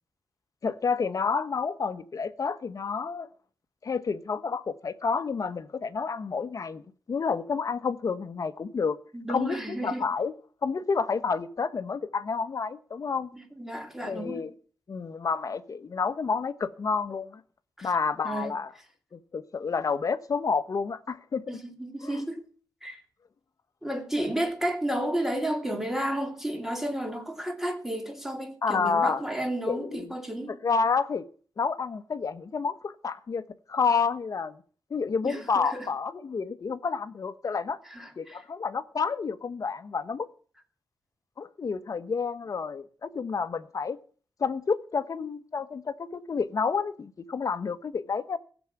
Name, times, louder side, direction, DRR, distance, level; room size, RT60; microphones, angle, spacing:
voice 1, 0.6-3.3 3.8-6.8 7.1-9.0 9.3-10.3 10.6-13.3 14.0-14.5 14.9-17.4 17.8-18.7 19.1-21.6 22.0-22.2 28.6-29.2 29.7-30.1 30.6-31.3 31.6-33.4 33.7-34.6 34.9-37.8 38.2-40.3 41.4-44.0 44.4-48.4, left 5 dB, 45° left, 1.1 m, -29 dB
voice 2, 9.1-10.1 13.3-14.5 17.8-17.9 18.2-18.5 21.5-22.4 22.8-23.0 23.8-30.6 35.2-35.9 37.9-38.4, right 1 dB, 5° right, 2.8 m, -32 dB
15.5 x 7.2 x 8.7 m
wide cardioid pair, 140°, 8 cm